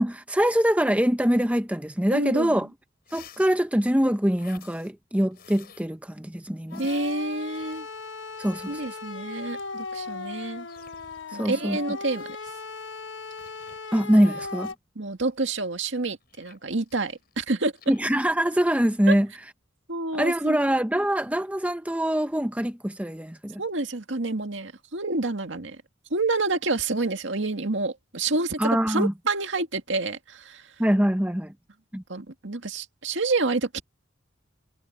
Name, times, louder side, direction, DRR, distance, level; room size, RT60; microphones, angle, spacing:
voice 1, 0.0-2.7 3.1-6.8 8.4-8.8 11.3-11.8 13.9-14.7 17.9-19.3 20.1-23.6 28.6-29.1 30.8-31.5 31.9-32.0, equal, 5° right, 1.0 m, -23 dB
voice 2, 2.1-2.7 6.8-7.9 8.7-10.7 11.3-12.4 15.0-17.7 19.1-19.2 19.9-20.6 23.6-25.8 26.1-30.7 32.1-33.8, right 3 dB, 75° right, 2.0 m, -28 dB
sound 1, 2.5-2.6 3.0-3.6 4.3-4.9 5.3-5.9 6.7-8.0 8.3-8.9 9.5-10.1 10.7-11.3 11.9-12.5 13.4-13.8 14.4-14.7 15.2-17.4 17.7-18.3, left 7 dB, 55° left, 7.4 m, -53 dB
sound 2, 6.7-14.7, left 4 dB, 75° left, 1.1 m, -37 dB
head